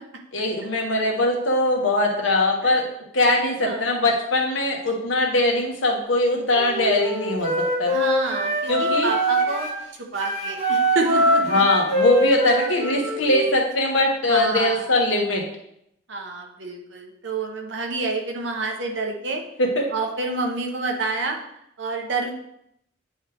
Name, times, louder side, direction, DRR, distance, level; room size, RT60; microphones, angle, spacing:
voice 1, 0.3-2.8 3.1-8.0 8.7-9.1 11.5-15.4 19.6-19.8, left 1 dB, 80° left, 0 dB, 1.3 m, -21 dB
Wind instrument woodwind instrument, 6.5-9.8 10.1-13.5, equal, 35° right, 1.6 m, -23 dB
voice 2, 7.9-9.7 10.1-11.6 14.3-14.9 16.1-19.4 19.9-21.4 21.8-22.3, right 3 dB, 65° right, 2 dB, 1.0 m, -28 dB
9.2 x 3.1 x 3.5 m, 0.75 s
head